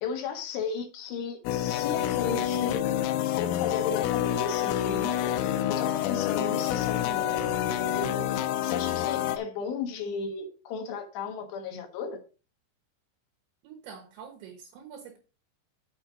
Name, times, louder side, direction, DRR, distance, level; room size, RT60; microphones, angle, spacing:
voice 1, 0.0-2.8 3.2-12.2, left 5 dB, 70° left, 3.2 m, -35 dB
sound 1, 1.5-9.4, left 11 dB, 90° left, 3.3 m, -28 dB
voice 2, 13.6-15.2, right 7 dB, 75° right, 3.3 m, -46 dB
7.3 x 6.8 x 5.1 m
omnidirectional pair, 5.6 m